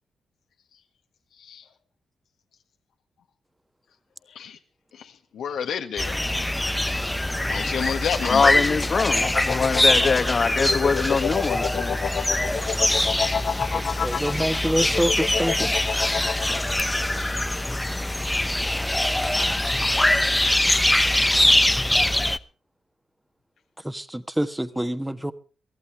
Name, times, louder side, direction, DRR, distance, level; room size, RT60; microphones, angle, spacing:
voice 1, 4.3-4.6 4.9-6.2 7.5-8.5 9.1-9.3 12.1-12.4 12.9-13.3 17.1-17.5, left 8 dB, 90° left, 1.6 m, -32 dB
sound 1, 6.0-22.4, left 1 dB, 10° left, 0.9 m, -23 dB
sound 2, 8.3-16.8, left 7 dB, 70° left, 0.9 m, -29 dB
voice 2, 8.3-12.0, left 5 dB, 50° left, 1.2 m, -23 dB
voice 3, 13.7-15.7 23.8-25.3, equal, 10° right, 1.4 m, -26 dB
23.5 x 14.5 x 3.4 m
cardioid pair, 80°, 0 cm